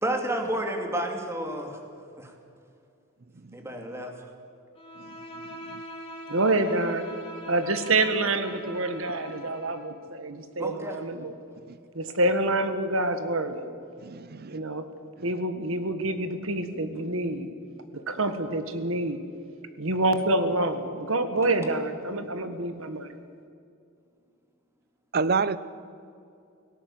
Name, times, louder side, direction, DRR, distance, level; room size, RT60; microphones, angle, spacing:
voice 1, 0.0-1.8 2.2-2.3 3.5-4.1 10.6-11.0, right 1 dB, 10° right, 3 dB, 2.5 m, -30 dB
Bowed string instrument, 4.7-9.9, equal, 25° left, 3.9 m, -42 dB
voice 2, 6.3-7.0 7.5-11.3 11.9-13.7 14.4-14.8 15.2-17.5 17.9-19.2 19.8-23.1, right 2 dB, 65° right, 9 dB, 1.6 m, -27 dB
voice 3, 14.0-14.6 25.1-25.6, right 4 dB, 45° right, 16 dB, 0.7 m, -27 dB
18.0 x 17.5 x 8.5 m, 2.5 s
head